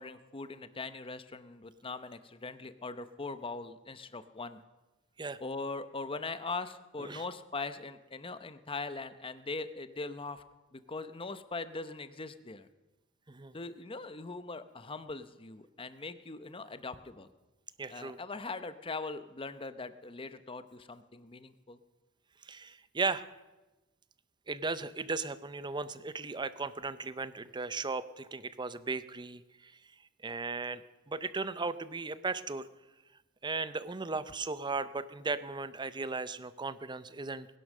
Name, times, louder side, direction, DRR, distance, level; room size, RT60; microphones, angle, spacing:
voice 1, 0.0-4.6 5.4-10.4 10.7-12.7 13.5-17.3 17.9-21.8, left 3 dB, 25° left, 12 dB, 0.8 m, -41 dB
voice 2, 17.8-18.2 22.4-23.2 24.5-29.7 30.2-30.8 31.1-32.7 33.4-37.5, right 3 dB, 20° right, 14 dB, 0.6 m, -36 dB
20.0 x 11.0 x 6.5 m, 1.1 s
head